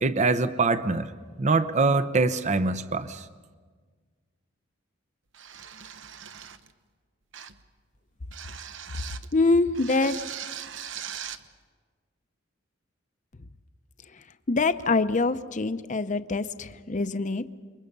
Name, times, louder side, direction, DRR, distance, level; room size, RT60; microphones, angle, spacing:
voice 1, 0.0-1.1 1.4-3.2, right 3 dB, 35° right, 12 dB, 0.7 m, -24 dB
sound 1, 5.3-6.7 7.3-7.7 8.3-9.3 9.7-11.5, right 9 dB, 65° right, 0.9 m, -40 dB
voice 2, 9.3-10.2 14.1-17.6, left 3 dB, 40° left, 12 dB, 0.7 m, -25 dB
28.0 x 23.5 x 5.4 m, 1.5 s
head